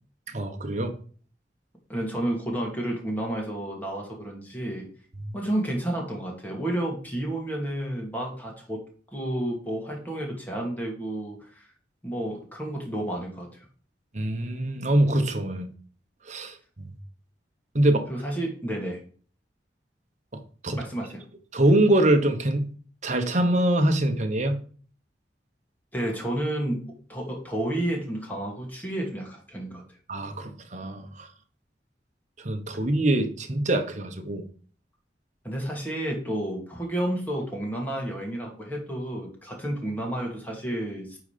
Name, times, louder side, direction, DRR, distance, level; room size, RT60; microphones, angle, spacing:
voice 1, 0.3-0.9 5.2-5.3 14.1-15.7 16.3-16.9 17.7-18.1 20.3-20.8 21.5-22.7 23.0-24.6 30.1-31.3 32.4-34.4, right 1 dB, 45° right, 6 dB, 1.1 m, -24 dB
voice 2, 1.9-4.9 5.3-8.8 9.1-11.7 12.0-13.5 18.1-19.0 20.8-21.2 25.9-26.8 27.1-29.8 35.4-41.2, right 1 dB, 10° left, -1 dB, 2.4 m, -31 dB
9.2 x 4.0 x 5.1 m, 0.43 s
head